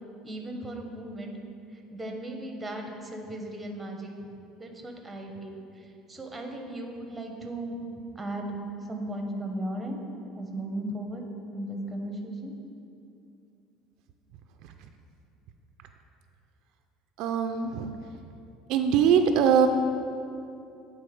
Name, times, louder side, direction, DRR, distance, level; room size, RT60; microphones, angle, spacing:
voice 1, 0.2-1.4 1.7-4.3 4.6-7.9 8.1-8.6 8.9-10.0 10.3-11.2 11.5-12.5, right 1 dB, 10° right, 2 dB, 0.8 m, -36 dB
voice 2, 17.2-17.9 18.7-19.7, right 7 dB, 65° right, 6 dB, 0.4 m, -22 dB
8.2 x 3.7 x 4.9 m, 2.6 s
cardioid pair, 135°, 0 cm